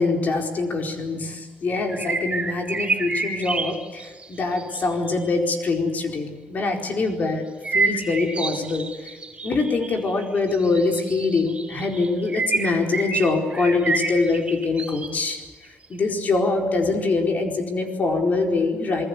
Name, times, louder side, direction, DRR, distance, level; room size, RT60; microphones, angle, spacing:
voice 1, 0.0-7.4 7.7-9.2 9.4-19.1, left 3 dB, 50° left, 3 dB, 4.5 m, -24 dB
sound 1, 1.9-5.3 7.6-15.3 15.8-15.9, right 3 dB, 30° right, 5.0 m, -28 dB
27.5 x 20.0 x 8.3 m, 1.3 s
cardioid pair, 90°, 4 cm